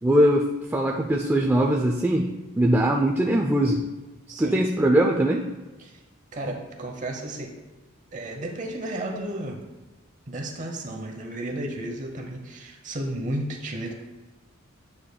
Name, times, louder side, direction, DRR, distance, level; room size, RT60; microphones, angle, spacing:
voice 1, 0.0-2.3 2.6-3.8 4.4-5.4, right 1 dB, 10° right, 0 dB, 0.3 m, -21 dB
voice 2, 4.3-4.6 5.8-6.0 6.3-7.5 8.1-9.6 10.3-13.9, right 1 dB, 40° right, 2 dB, 0.8 m, -33 dB
9.8 x 6.8 x 2.2 m, 1.2 s
head